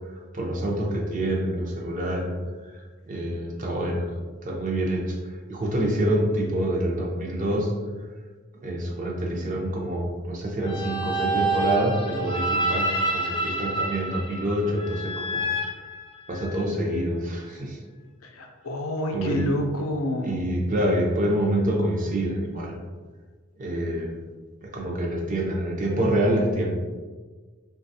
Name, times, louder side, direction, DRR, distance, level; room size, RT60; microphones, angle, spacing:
voice 1, 0.0-2.3 2.7-4.1 4.4-5.2 5.5-7.7 8.6-15.4 16.3-17.8 19.1-19.5 20.2-22.8 23.6-24.1 24.6-26.7, right 1 dB, 40° right, -1 dB, 0.5 m, -26 dB
sound 1, 10.6-16.6, right 2 dB, 25° left, 0.4 m, -28 dB
voice 2, 18.2-20.3, equal, 75° left, 2 dB, 0.5 m, -28 dB
3.3 x 2.3 x 2.6 m, 1.4 s
head